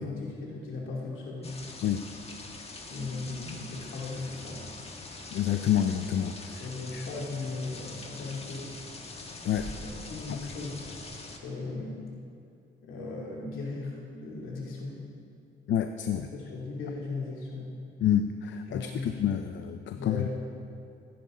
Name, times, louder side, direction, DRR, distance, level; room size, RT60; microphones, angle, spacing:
voice 1, 0.0-1.6 2.9-4.8 6.5-8.8 9.6-11.0 11.4-12.0 12.8-15.1 16.3-17.8 18.7-19.2 19.9-20.3, left 3 dB, 85° left, -3 dB, 2.6 m, -37 dB
sound 1, 1.4-11.4, left 3 dB, 30° left, 1.4 m, -43 dB
voice 2, 5.3-6.3 6.9-7.0 9.4-9.7 15.7-16.3 18.0-20.3, left 10 dB, 70° left, 7 dB, 0.5 m, -28 dB
15.5 x 10.0 x 3.8 m, 2.5 s
cardioid pair, 90°, 20 cm